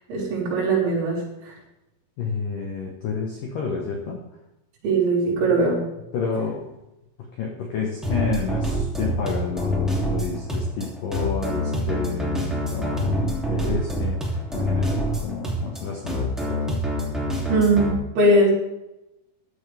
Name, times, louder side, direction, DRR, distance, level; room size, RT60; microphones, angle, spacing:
voice 1, 0.1-1.5 4.8-5.8 17.5-18.5, right 2 dB, 65° right, -5 dB, 6.2 m, -20 dB
voice 2, 2.2-4.2 5.4-5.5 6.1-6.7 7.2-16.8, left 5 dB, 70° left, 0 dB, 2.1 m, -30 dB
sound 1, 8.0-17.9, equal, ahead, 0.7 m, -26 dB
15.0 x 11.0 x 3.5 m, 0.90 s
omnidirectional pair, 5.9 m